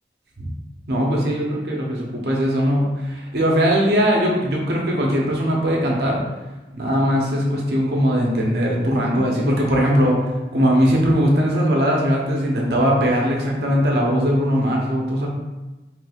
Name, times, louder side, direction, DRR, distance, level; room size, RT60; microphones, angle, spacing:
voice 1, 0.9-6.2 6.7-10.2 10.5-15.3, equal, 65° right, -2 dB, 0.7 m, -20 dB
3.2 x 3.2 x 2.3 m, 1.1 s
head